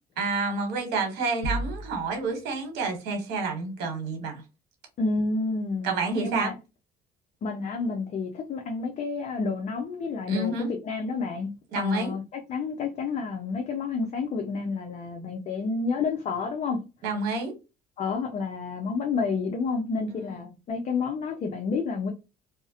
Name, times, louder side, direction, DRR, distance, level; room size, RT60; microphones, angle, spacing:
voice 1, 0.2-4.4 5.8-6.5 10.3-10.7 11.7-12.2 17.0-17.5 20.1-20.4, right 3 dB, 85° right, 1.0 m, -29 dB
sound 1, 1.4-2.4, right 1 dB, 60° right, 0.8 m, -32 dB
voice 2, 5.0-5.9 6.2-6.5 7.4-16.8 18.0-22.1, left 4 dB, 45° left, 0.5 m, -30 dB
2.4 x 2.0 x 2.6 m
cardioid pair, 110°, 17 cm